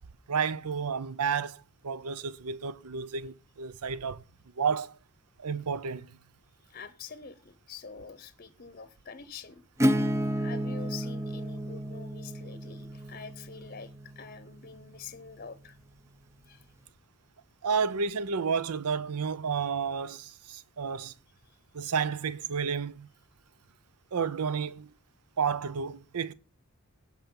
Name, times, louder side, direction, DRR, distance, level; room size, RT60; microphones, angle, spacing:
voice 1, 0.3-4.2 4.6-5.0 5.4-6.1 17.6-21.1 21.7-23.1 24.1-24.9 25.4-26.3, right 6 dB, 90° right, 0.6 m, -31 dB
voice 2, 6.7-9.6 9.9-10.0 10.4-15.7 16.5-16.7, left 5 dB, 40° left, 0.7 m, -46 dB
Acoustic guitar / Strum, 9.8-15.3, equal, 10° right, 0.5 m, -32 dB
17.0 x 5.9 x 5.3 m
head